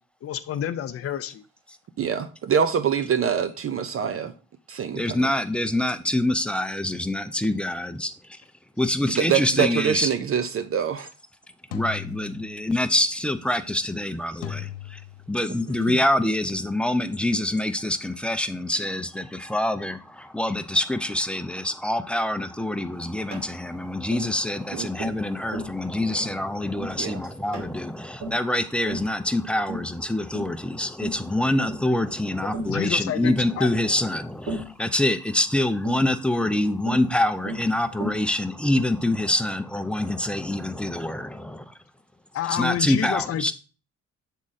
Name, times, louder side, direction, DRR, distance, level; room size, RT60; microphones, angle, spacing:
voice 1, 0.2-1.4 32.7-33.7 42.3-43.5, left 10 dB, 50° left, 0.6 m, -29 dB
voice 2, 2.0-4.3 4.7-5.2 9.2-11.1 15.8-16.0 24.7-24.9 27.0-27.2, right 8 dB, 50° right, 0.6 m, -25 dB
voice 3, 4.9-8.4 8.8-10.1 11.7-15.0 15.3-41.7 42.5-43.5, left 1 dB, 5° left, 0.5 m, -25 dB
sound 1, 9.9-10.2 11.7-12.9 14.4-15.6, left 11 dB, 85° left, 0.9 m, -38 dB
Tap, 23.3-23.5 24.1-24.3 25.0-25.2 25.5-25.8 26.2-26.4 26.8-27.0 27.5-27.7 28.2-28.5 28.9-29.1 29.7-29.9 30.3-30.6 31.0-31.2 31.7-31.9 32.5-32.8 33.2-33.4 34.5-34.7 35.8-36.1 36.9-37.1 37.5-37.7 38.0-38.3, right 1 dB, 80° right, 2.9 m, -34 dB
7.5 x 3.7 x 4.1 m
cardioid pair, 90°, 30 cm